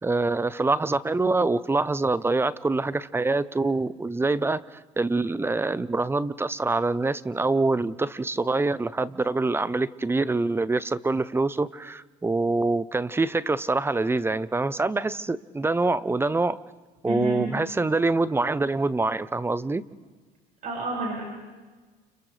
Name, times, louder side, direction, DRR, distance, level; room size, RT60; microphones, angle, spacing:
voice 1, 0.0-16.6 17.0-19.8, right 3 dB, 15° right, 17 dB, 0.7 m, -25 dB
voice 2, 17.0-17.5 20.6-21.2, right 1 dB, 50° right, -2 dB, 5.9 m, -30 dB
29.5 x 29.0 x 3.4 m, 1.3 s
supercardioid pair, 100°, 18 cm